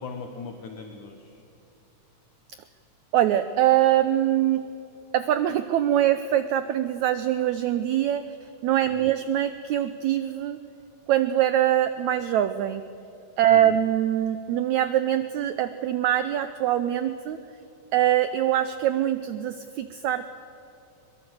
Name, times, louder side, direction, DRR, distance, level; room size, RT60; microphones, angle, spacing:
voice 1, 0.0-1.4 8.8-9.1 13.4-13.8, left 4 dB, 65° left, 5 dB, 2.5 m, -40 dB
voice 2, 3.1-4.7 5.1-8.2 8.6-10.6 11.1-12.8 13.4-17.4 17.9-20.3, right 12 dB, 85° right, 11 dB, 1.6 m, -23 dB
23.0 x 22.5 x 7.9 m, 2.8 s
omnidirectional pair, 4.1 m